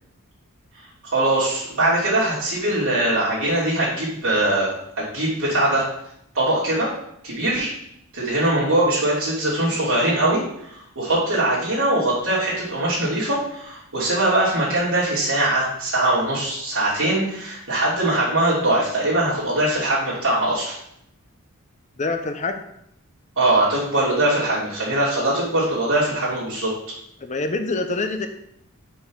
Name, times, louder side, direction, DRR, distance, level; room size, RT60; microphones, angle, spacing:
voice 1, 1.0-5.9 6.3-6.9 7.2-7.7 8.1-20.8 23.4-26.7, right 1 dB, 70° right, -9 dB, 2.9 m, -21 dB
voice 2, 22.0-22.6 27.2-28.3, left 3 dB, 30° left, 6 dB, 0.6 m, -25 dB
5.9 x 4.7 x 5.5 m, 0.75 s
head